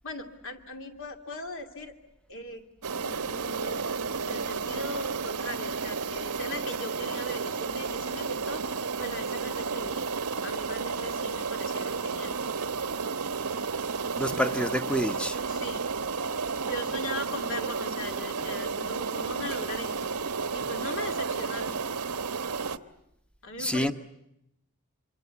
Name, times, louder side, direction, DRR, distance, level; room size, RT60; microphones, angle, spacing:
voice 1, 0.0-1.9 2.3-2.6 3.0-3.8 4.2-8.6 9.0-10.1 10.4-12.4 14.3-14.8 15.5-15.8 16.6-20.1 20.5-21.8 23.4-23.9, left 1 dB, 60° left, 2.6 m, -39 dB
sound 1, 2.8-22.8, right 5 dB, 90° right, 1.1 m, -32 dB
voice 2, 14.2-15.4 23.6-23.9, equal, 5° left, 1.0 m, -27 dB
26.0 x 25.5 x 8.3 m
head